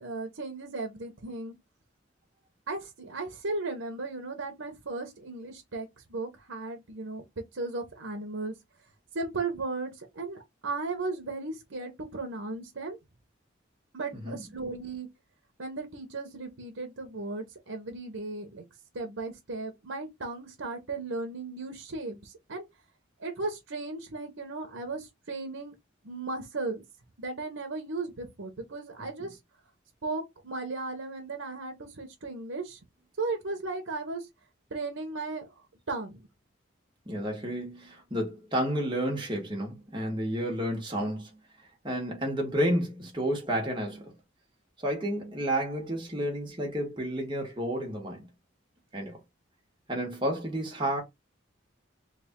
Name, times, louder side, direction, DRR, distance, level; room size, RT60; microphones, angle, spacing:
voice 1, 0.0-1.5 2.7-7.2 7.5-8.5 9.1-13.0 13.9-15.1 15.6-18.7 18.9-22.6 23.2-25.7 26.0-26.8 27.2-29.4 30.0-32.8 33.2-34.3 34.7-35.5 35.9-36.2, right 3 dB, 80° right, 0.9 m, -36 dB
voice 2, 37.1-41.3 41.8-44.1 44.8-48.3 48.9-49.2 49.9-51.0, equal, 25° right, 1.3 m, -31 dB
3.4 x 2.5 x 3.6 m
head